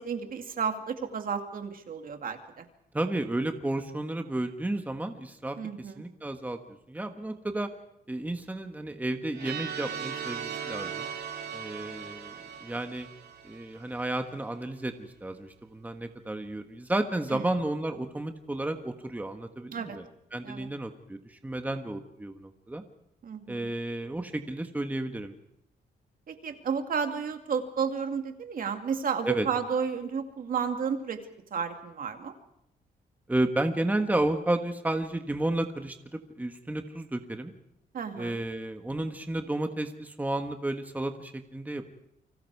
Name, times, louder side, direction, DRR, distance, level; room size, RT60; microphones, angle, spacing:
voice 1, 0.0-2.7 5.6-6.0 17.3-17.4 19.7-20.0 20.4-20.7 23.2-23.7 26.3-31.2 31.5-32.3 37.9-38.4, right 6 dB, 55° right, 6 dB, 2.3 m, -32 dB
voice 2, 2.9-5.6 6.0-6.6 6.9-7.7 8.1-11.1 11.5-12.3 12.6-13.1 13.4-20.0 20.3-22.8 23.5-25.3 29.2-29.5 33.3-37.5 38.2-41.9, right 1 dB, 10° right, 6 dB, 1.5 m, -32 dB
sound 1, 9.3-14.2, right 7 dB, 90° right, 3.4 m, -38 dB
29.5 x 25.0 x 4.8 m, 0.79 s
wide cardioid pair, 135°, 17 cm